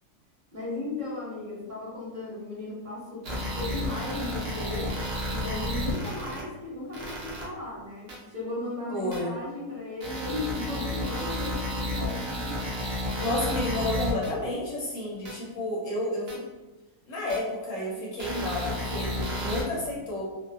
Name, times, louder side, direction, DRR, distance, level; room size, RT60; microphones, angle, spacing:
voice 1, 0.5-4.9 5.2-12.7, left 2 dB, 35° right, -8 dB, 0.9 m, -36 dB
sound 1, 3.2-6.4 6.9-7.4 8.1-8.2 9.1-9.2 10.0-14.3 15.3-15.4 16.3-16.4 17.3-17.4 18.2-19.6, left 1 dB, 65° right, 0.6 m, -32 dB
voice 2, 8.9-9.3 13.2-16.4 17.1-20.2, left 1 dB, 65° left, -4 dB, 0.8 m, -31 dB
2.6 x 2.1 x 2.4 m, 1.1 s
omnidirectional pair, 1.7 m